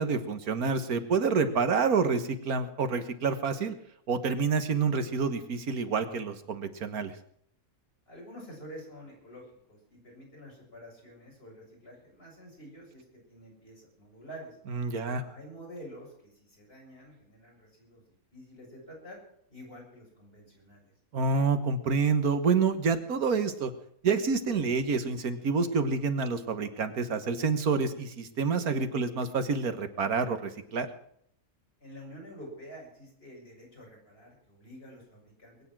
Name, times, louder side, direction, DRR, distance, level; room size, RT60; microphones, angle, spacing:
voice 1, 0.0-3.7 4.1-7.1 14.7-15.2 21.1-23.7 24.0-30.9, right 5 dB, 85° right, 10 dB, 1.9 m, -28 dB
voice 2, 8.1-14.6 14.9-18.0 18.3-19.2 19.5-20.9 31.8-35.6, equal, 40° left, -2 dB, 7.6 m, -48 dB
22.0 x 9.7 x 6.2 m, 0.67 s
omnidirectional pair, 1.5 m